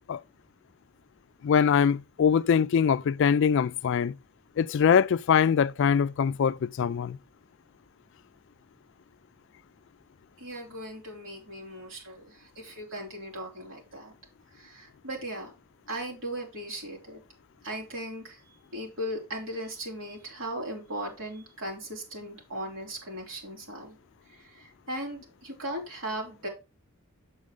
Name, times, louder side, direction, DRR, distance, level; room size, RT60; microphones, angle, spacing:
voice 1, 1.4-4.1 4.6-7.2, left 7 dB, 60° left, 0.3 m, -23 dB
voice 2, 10.4-14.1 14.5-15.5 15.9-17.2 17.6-18.4 18.7-24.0 24.3-26.5, right 1 dB, 65° right, 3.4 m, -38 dB
7.5 x 6.2 x 3.7 m
head